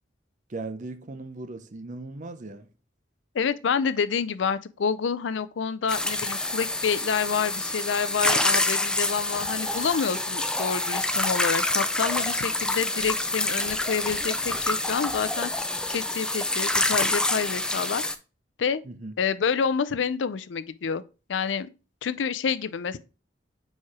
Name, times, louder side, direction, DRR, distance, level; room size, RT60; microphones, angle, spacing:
voice 1, 0.5-2.7 18.8-19.1, right 2 dB, 40° right, 0.6 m, -38 dB
voice 2, 3.3-15.5 15.9-18.0 18.6-18.8 19.2-21.0 21.3-21.7 22.0-23.0, left 6 dB, 75° left, 0.4 m, -28 dB
sound 1, 5.9-18.2, left 2 dB, 5° left, 0.4 m, -27 dB
4.7 x 4.3 x 4.8 m
head